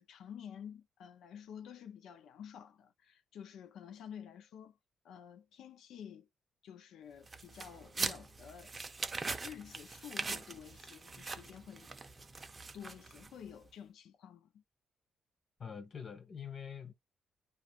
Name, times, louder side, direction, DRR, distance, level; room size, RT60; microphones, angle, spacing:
voice 1, 0.0-4.8 5.0-6.3 6.6-8.7 9.4-11.9 12.7-14.6, left 8 dB, 85° left, 0.6 m, -50 dB
sound 1, 7.3-13.5, right 3 dB, 20° right, 0.4 m, -42 dB
voice 2, 15.6-16.9, left 7 dB, 35° left, 0.6 m, -45 dB
2.4 x 2.4 x 2.8 m
cardioid pair, 175°, 0 cm